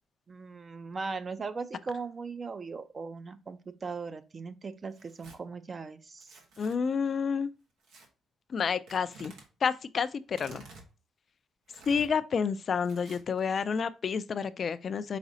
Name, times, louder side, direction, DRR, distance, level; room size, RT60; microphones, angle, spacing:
voice 1, 0.3-6.3, right 4 dB, 35° right, 0.5 m, -39 dB
Tearing, 4.9-5.4 6.2-6.8 7.8-8.1 8.9-9.5 10.3-10.9 11.7-12.1 12.8-13.4, right 3 dB, 90° right, 1.0 m, -51 dB
voice 2, 6.6-7.5 8.5-9.3 9.6-10.6 11.9-15.2, left 6 dB, 50° left, 0.3 m, -29 dB
4.9 x 4.0 x 2.7 m
cardioid pair, 90°, 0 cm